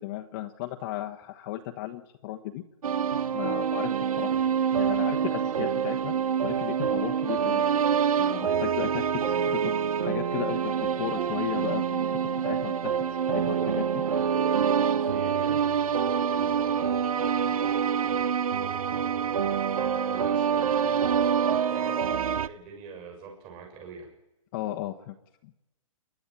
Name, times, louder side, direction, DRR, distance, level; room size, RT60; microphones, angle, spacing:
voice 1, 0.0-2.6 3.3-4.4 4.7-6.1 6.4-7.6 8.2-9.7 10.0-12.7 13.3-13.8 24.5-25.2 25.4-25.7, left 15 dB, 35° left, 3 dB, 1.2 m, -35 dB
sound 1, 2.8-22.5, right 7 dB, 85° right, 0.9 m, -26 dB
voice 2, 13.4-13.8 14.3-19.3 20.1-24.1, right 5 dB, 30° right, 0 dB, 6.4 m, -43 dB
28.5 x 11.0 x 8.9 m, 0.92 s
hypercardioid pair, 150°, 18 cm